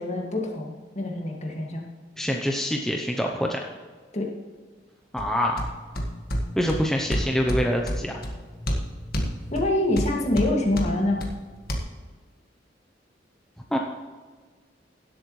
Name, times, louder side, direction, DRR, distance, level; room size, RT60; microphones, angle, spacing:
voice 1, 0.0-1.8 4.1-4.3 9.5-11.2, left 1 dB, 40° left, 0 dB, 2.0 m, -25 dB
voice 2, 2.2-3.6 5.1-5.6 6.6-8.2 13.7-13.8, equal, 5° left, 0 dB, 0.7 m, -25 dB
sound 1, 5.2-11.8, equal, 55° left, 1.7 m, -31 dB
17.0 x 8.1 x 3.2 m, 1.5 s
head